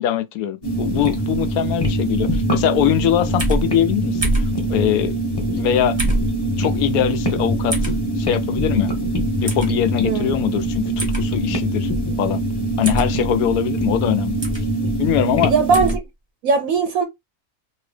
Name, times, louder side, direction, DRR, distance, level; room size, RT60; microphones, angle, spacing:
voice 1, 0.0-4.2 4.7-5.1 5.5-6.0 6.6-7.9 8.2-8.9 9.4-11.9 12.2-12.4 12.8-14.5 15.0-15.5, left 11 dB, 75° left, 1.0 m, -22 dB
sound 1, 0.6-16.0, right 1 dB, 25° left, 0.6 m, -23 dB
sound 2, 3.4-3.6 4.2-4.5 6.0-6.3 7.7-8.0 9.5-9.7 11.0-11.2 12.8-13.1 14.4-14.6 15.7-16.0, right 1 dB, 20° right, 0.8 m, -22 dB
voice 2, 10.0-10.4 15.5-16.0 16.4-17.0, right 5 dB, 70° right, 1.0 m, -19 dB
2.8 x 2.7 x 3.2 m
omnidirectional pair, 1.6 m